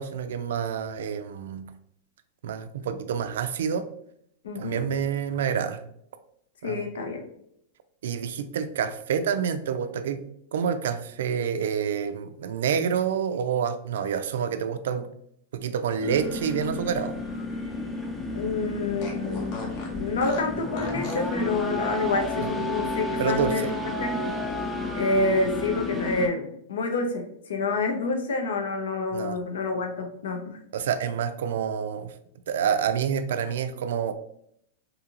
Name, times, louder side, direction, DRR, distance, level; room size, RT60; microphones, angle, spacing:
voice 1, 0.0-1.7 2.4-3.9 4.6-5.8 6.6-6.9 8.0-10.2 10.5-15.1 15.5-17.1 22.4-22.5 23.2-23.7 29.1-29.4 30.7-32.1 32.5-34.1, right 7 dB, 75° right, 10 dB, 0.3 m, -28 dB
voice 2, 4.4-4.8 6.6-7.2 18.3-19.6 19.9-23.7 24.0-24.3 24.9-30.6, left 3 dB, 85° left, 4 dB, 0.6 m, -28 dB
Fart, 16.0-18.0 18.3-18.4 19.0-21.3, left 2 dB, 45° left, 0.7 m, -41 dB
sound 1, 16.0-26.3, left 2 dB, 5° left, 0.4 m, -31 dB
2.7 x 2.5 x 2.9 m, 0.71 s
supercardioid pair, 150°, 0 cm